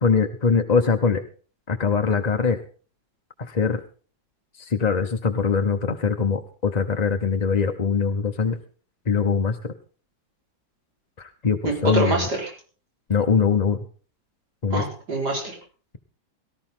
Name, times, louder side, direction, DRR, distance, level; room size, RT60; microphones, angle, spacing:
voice 1, 0.0-1.2 1.7-2.6 3.4-3.8 4.6-8.6 9.1-9.7 11.2-12.2 13.1-13.8 14.6-14.8, left 5 dB, 40° left, 6 dB, 0.6 m, -22 dB
voice 2, 11.6-12.5 14.7-15.6, right 2 dB, 55° right, 1 dB, 5.2 m, -25 dB
18.0 x 13.5 x 3.8 m, 0.39 s
omnidirectional pair, 2.1 m